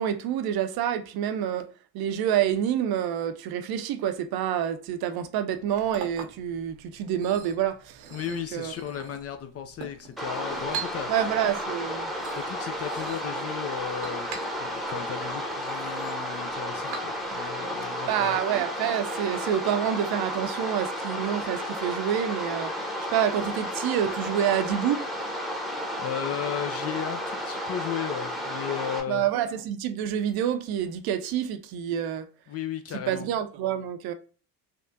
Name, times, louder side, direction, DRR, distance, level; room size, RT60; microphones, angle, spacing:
voice 1, 0.0-8.7 11.1-12.1 18.1-22.7 23.1-25.0 29.1-32.3 33.1-34.1, right 10 dB, 55° right, 0.6 m, -27 dB
Chink clink, 5.5-17.5, right 6 dB, 80° right, 0.9 m, -43 dB
voice 2, 8.1-11.1 12.3-14.3 14.6-18.4 26.0-29.2 32.5-33.3, left 9 dB, 35° left, 0.4 m, -35 dB
sound 1, 10.2-29.0, equal, ahead, 0.9 m, -32 dB
3.4 x 2.3 x 2.6 m
hypercardioid pair, 75°, 46 cm